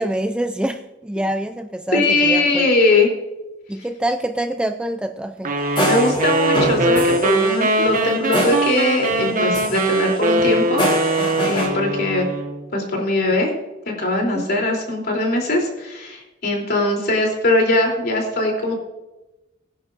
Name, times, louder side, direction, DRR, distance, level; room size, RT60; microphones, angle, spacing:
voice 1, 0.0-2.7 3.7-5.5 14.2-14.5, right 1 dB, 5° right, 7 dB, 0.4 m, -25 dB
voice 2, 1.9-3.1 5.8-12.2 12.7-13.5 14.0-18.7, left 2 dB, 55° left, 0 dB, 3.2 m, -20 dB
sound 1, 5.4-12.6, right 2 dB, 45° right, 1.4 m, -21 dB
sound 2, 5.6-9.3 9.5-11.7, equal, 25° left, 5.2 m, -25 dB
20.0 x 10.5 x 2.5 m, 1.0 s
head